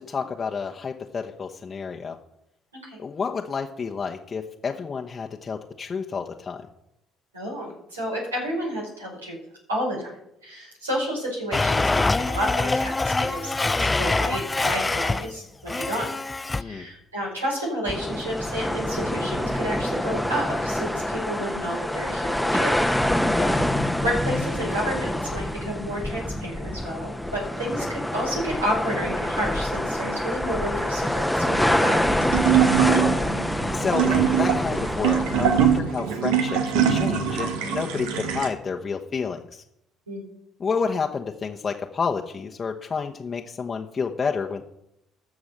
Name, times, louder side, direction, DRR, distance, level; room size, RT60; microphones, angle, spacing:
voice 1, 0.0-2.2 3.0-6.7 16.6-16.9 23.3-23.7 32.8-33.1 33.4-39.6 40.6-44.6, left 5 dB, 35° left, 2 dB, 1.0 m, -30 dB
voice 2, 7.3-9.4 9.7-16.1 16.6-22.9 24.0-32.1 40.1-40.2, equal, 90° right, -3 dB, 4.9 m, -30 dB
Domestic sounds home sounds, 11.5-15.3 15.7-16.6, left 3 dB, 20° left, 0.5 m, -24 dB
sound 1, 17.9-35.8, left 1 dB, 5° left, 1.0 m, -26 dB
sound 2, 31.5-38.5, right 9 dB, 70° right, 1.3 m, -23 dB
14.5 x 6.3 x 6.5 m, 0.80 s
figure-of-eight pair, 50°, 0 cm